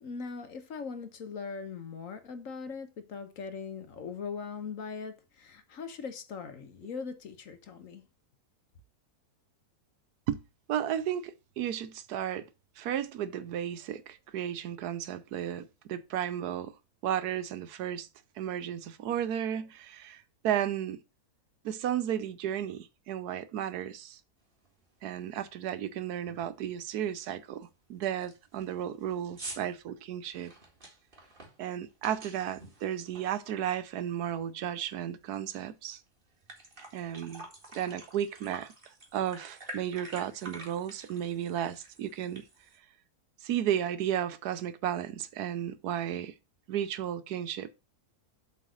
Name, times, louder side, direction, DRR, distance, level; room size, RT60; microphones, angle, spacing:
voice 1, 0.0-8.1, left 5 dB, 60° left, 1.4 m, -40 dB
voice 2, 10.7-12.5 12.8-16.7 17.0-18.1 18.4-21.0 21.6-24.2 25.0-30.5 31.6-36.0 36.9-38.7 39.1-42.5 43.4-46.3 46.7-47.8, right 10 dB, 85° right, 1.3 m, -34 dB
sound 1, 24.6-24.7 25.2-25.5 25.8-25.9 26.3-26.6 27.0-27.1 27.6-27.7 28.0-34.0 34.3-35.6 36.0-36.1 36.3-42.8, right 2 dB, 35° right, 2.1 m, -48 dB
7.7 x 4.2 x 6.2 m
omnidirectional pair, 1.6 m